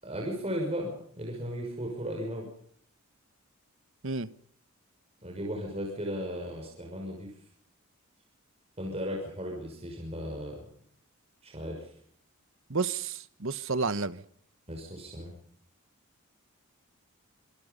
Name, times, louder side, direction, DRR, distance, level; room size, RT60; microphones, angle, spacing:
voice 1, 0.0-2.5 5.2-7.3 8.8-10.6 11.4-11.9 14.7-15.3, equal, 25° right, 6.3 m, -36 dB
voice 2, 12.7-14.2, right 4 dB, 60° right, 1.1 m, -31 dB
26.5 x 22.5 x 5.5 m
head